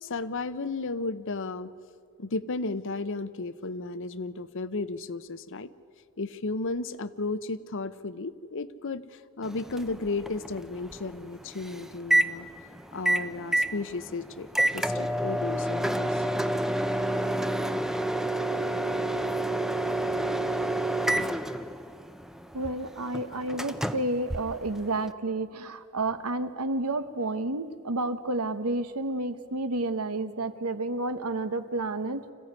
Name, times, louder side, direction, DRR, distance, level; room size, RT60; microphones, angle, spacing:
voice 1, 0.0-1.7 2.2-5.7 6.2-12.5 12.9-14.5 14.7-16.2 23.3-23.5, left 3 dB, 60° left, 14 dB, 0.8 m, -34 dB
Microwave oven, 9.4-25.1, right 1 dB, ahead, 0.6 m, -29 dB
voice 2, 22.5-32.2, right 2 dB, 85° right, 11 dB, 1.2 m, -30 dB
25.5 x 15.5 x 9.6 m, 2.2 s
head